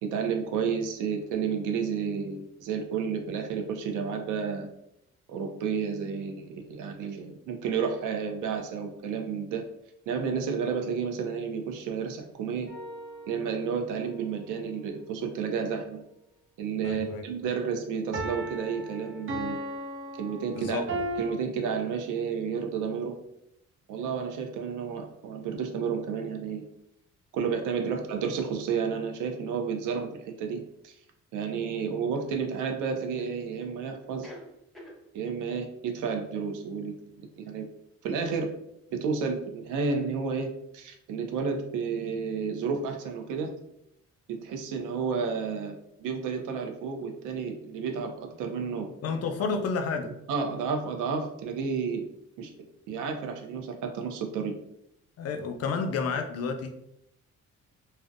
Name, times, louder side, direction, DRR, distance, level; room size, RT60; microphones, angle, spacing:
voice 1, 0.0-4.7 5.3-9.6 10.1-12.8 13.3-16.0 16.6-19.6 20.2-23.1 23.9-26.6 27.3-31.0 31.3-34.3 35.1-37.7 38.0-38.5 38.9-43.5 44.3-48.9 50.0-52.1 52.4-52.5 52.9-54.6, right 6 dB, 90° right, 4 dB, 0.5 m, -31 dB
sound 1, 12.7-13.7 18.1-21.3, right 1 dB, 45° right, 0.5 m, -36 dB
voice 2, 16.8-17.3 20.5-20.9 49.0-50.1 55.2-56.7, left 4 dB, 55° left, 5 dB, 0.4 m, -30 dB
sound 2, 29.6-29.8 31.4-32.3 33.2-33.8 34.0-35.0, left 1 dB, ahead, 0.6 m, -49 dB
2.5 x 2.0 x 2.4 m, 0.79 s
cardioid pair, 90°, 30 cm